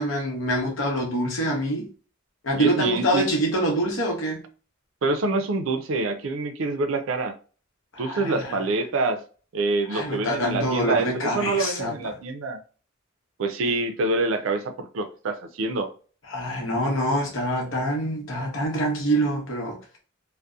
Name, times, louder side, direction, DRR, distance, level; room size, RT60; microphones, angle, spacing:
voice 1, 0.0-1.9 2.4-4.4 7.9-8.6 9.9-12.2 16.3-19.8, right 1 dB, 65° left, 0.9 m, -25 dB
voice 2, 2.5-3.3 5.0-7.3 8.0-9.2 9.5-12.6 13.4-15.9, right 3 dB, 70° right, 0.4 m, -26 dB
2.6 x 2.1 x 2.3 m
head